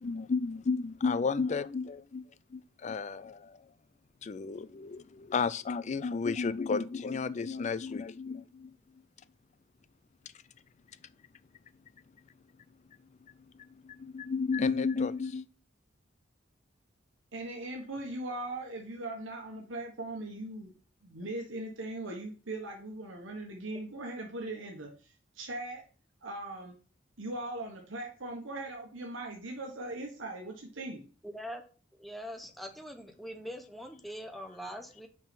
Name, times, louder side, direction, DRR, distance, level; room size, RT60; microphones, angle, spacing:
voice 1, 0.0-3.7 4.2-9.0 13.2-15.5, left 4 dB, 35° left, 0.4 m, -33 dB
voice 2, 17.3-20.7 21.0-25.8 26.2-26.7 27.2-31.1, right 2 dB, 85° right, 1.4 m, -40 dB
voice 3, 31.2-31.6 32.0-35.1, equal, ahead, 0.8 m, -42 dB
5.8 x 4.7 x 5.3 m
head